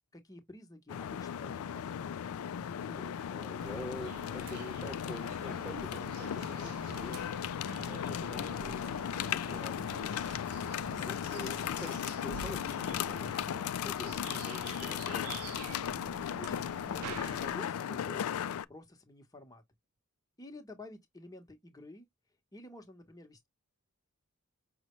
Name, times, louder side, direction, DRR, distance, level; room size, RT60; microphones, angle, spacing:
voice 1, 0.1-2.1 16.4-19.6 20.4-22.1 22.5-23.5, left 2 dB, 15° left, 0.9 m, -50 dB
sound 1, 0.9-18.6, left 9 dB, 75° left, 0.3 m, -36 dB
voice 2, 2.8-7.2 7.9-10.2 10.9-15.6, left 1 dB, ahead, 0.5 m, -47 dB
sound 2, 3.6-17.6, right 7 dB, 90° right, 0.5 m, -48 dB
5.5 x 2.1 x 3.0 m
head